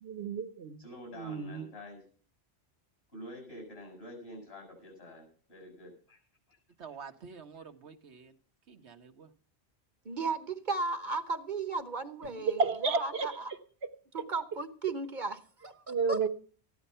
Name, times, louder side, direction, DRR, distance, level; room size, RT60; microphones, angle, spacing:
voice 1, 0.0-0.8 1.2-1.6 12.2-13.4 13.8-13.9 15.9-16.3, right 4 dB, 70° right, 1.4 m, -31 dB
voice 2, 0.8-2.1 3.1-6.2 7.5-7.6, left 1 dB, 65° left, 7.3 m, -47 dB
voice 3, 6.8-8.3 8.7-9.3, right 6 dB, 90° right, 1.5 m, -48 dB
voice 4, 10.0-12.6 12.9-13.5 14.1-16.2, right 3 dB, 45° right, 1.1 m, -35 dB
15.0 x 11.0 x 5.6 m
omnidirectional pair, 1.1 m